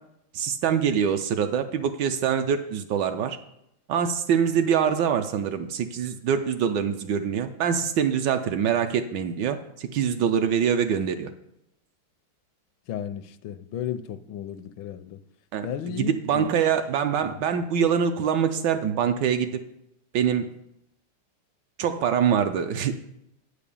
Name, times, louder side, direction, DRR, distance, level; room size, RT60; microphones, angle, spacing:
voice 1, 0.3-3.4 3.9-11.3 15.5-15.7 16.0-19.6 20.1-20.5 21.8-22.9, right 7 dB, 70° right, 8 dB, 1.1 m, -24 dB
voice 2, 12.9-15.2 15.6-16.5 17.2-17.6, left 10 dB, 80° left, 13 dB, 1.3 m, -34 dB
8.6 x 5.0 x 6.9 m, 0.81 s
omnidirectional pair, 2.2 m